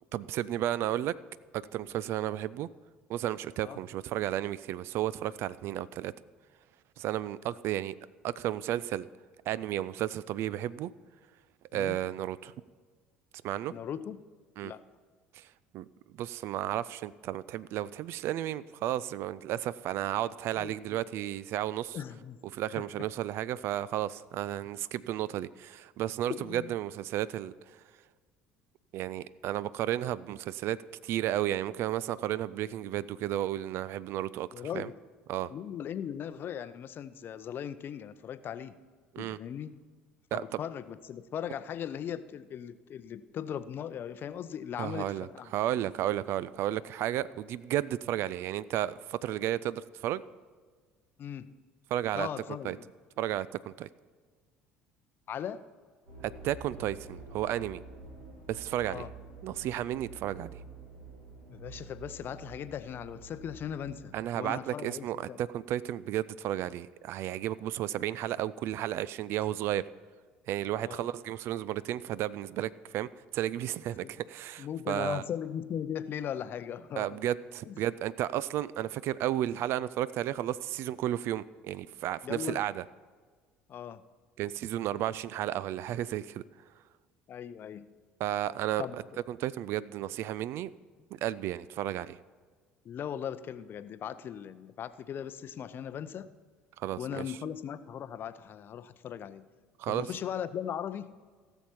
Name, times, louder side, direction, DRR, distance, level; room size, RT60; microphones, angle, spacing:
voice 1, 0.1-1.1 1.5-2.7 3.1-6.1 7.0-7.9 8.2-9.1 9.5-10.9 11.7-12.5 13.4-13.7 14.6-14.7 15.3-15.5 15.7-15.9 16.2-22.0 22.5-27.5 28.9-34.9 35.3-35.5 39.1-39.4 40.3-40.6 44.8-50.2 51.9-52.3 52.6-52.8 53.2-53.9 56.2-57.8 58.5-59.1 59.4-60.6 64.1-69.8 70.5-73.1 73.3-75.2 77.0-82.8 84.4-86.4 88.2-88.9 89.3-90.7 91.2-92.2 96.8-97.2 99.8-100.1, right 12 dB, 55° right, 19 dB, 0.3 m, -33 dB
voice 2, 13.7-14.2 14.6-14.8 20.5-21.0 21.9-22.4 26.3-26.7 34.5-35.0 35.5-38.7 39.2-39.7 40.3-45.5 51.2-51.5 52.1-52.9 55.3-55.6 58.9-59.1 61.5-65.4 70.8-71.1 74.0-74.1 74.6-77.1 77.6-77.8 82.2-82.6 83.7-84.0 87.3-87.9 88.8-89.0 92.8-96.3 97.0-99.4 99.9-101.1, left 9 dB, 45° left, 13 dB, 0.6 m, -38 dB
sound 1, 56.1-64.1, right 3 dB, 75° right, 2.8 m, -48 dB
17.0 x 7.0 x 4.5 m, 1.5 s
figure-of-eight pair, 60°, 5 cm